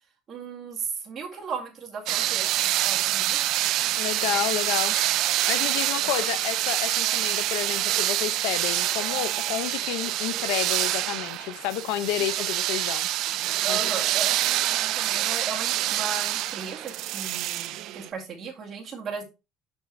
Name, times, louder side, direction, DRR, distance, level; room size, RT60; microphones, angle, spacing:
voice 1, 0.3-3.6 4.5-4.9 5.9-6.3 13.6-19.2, right 5 dB, 30° right, 1.9 m, -36 dB
Hammer, 1.3-3.8 4.3-5.9, left 8 dB, 40° left, 1.2 m, -47 dB
sound 1, 2.1-18.1, right 14 dB, 55° right, 0.3 m, -26 dB
voice 2, 3.9-4.9 5.5-13.1 13.7-13.8, left 13 dB, 80° left, 0.6 m, -30 dB
6.1 x 5.6 x 3.1 m
cardioid pair, 160°, 0 cm